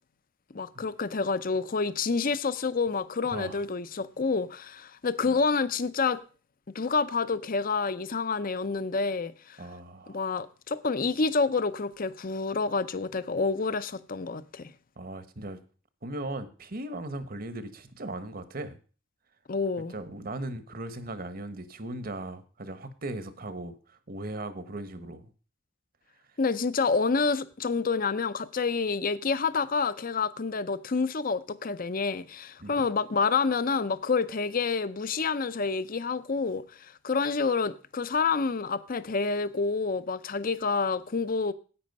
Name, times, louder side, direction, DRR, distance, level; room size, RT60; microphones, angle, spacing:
voice 1, 0.5-6.2 6.7-9.6 10.1-14.7 19.5-19.9 26.4-41.5, left 4 dB, 45° left, 0.7 m, -28 dB
voice 2, 3.3-3.6 5.3-5.4 9.6-10.2 15.0-15.6 16.0-18.8 19.9-25.3 32.6-32.8, right 2 dB, 50° right, 1.1 m, -38 dB
10.0 x 8.7 x 5.4 m
head